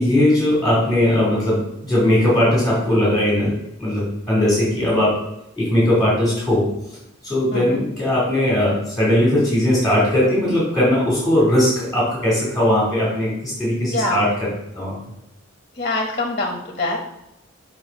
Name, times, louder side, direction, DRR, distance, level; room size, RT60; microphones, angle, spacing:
voice 1, 0.0-5.2 5.6-6.8 7.2-14.5 14.7-15.0, left 1 dB, ahead, -8 dB, 2.4 m, -19 dB
voice 2, 13.9-14.2 15.8-17.0, left 2 dB, 35° left, 0 dB, 0.9 m, -24 dB
7.2 x 3.2 x 5.2 m, 0.83 s
head